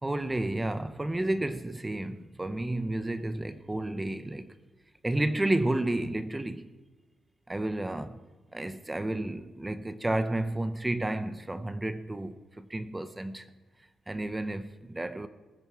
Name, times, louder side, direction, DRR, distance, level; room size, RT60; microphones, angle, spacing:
voice 1, 0.0-4.6 5.0-6.7 7.5-8.2 8.5-13.5 14.1-15.3, right 1 dB, 15° right, 0.7 m, -31 dB
20.0 x 9.1 x 4.6 m
cardioid pair, 110°, 0 cm